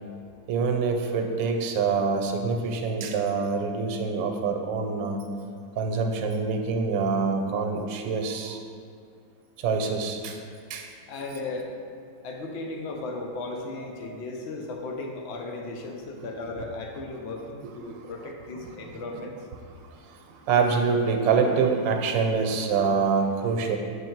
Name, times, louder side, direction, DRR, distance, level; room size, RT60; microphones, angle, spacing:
voice 1, 0.5-5.2 5.8-8.6 9.6-10.4 10.7-10.9 14.1-14.2 18.9-19.2 20.5-23.8, right 5 dB, 90° right, 3 dB, 1.3 m, -25 dB
voice 2, 11.1-11.7 12.2-19.3, left 3 dB, 65° left, 2 dB, 0.6 m, -36 dB
6.2 x 3.4 x 4.5 m, 2.3 s
omnidirectional pair, 1.9 m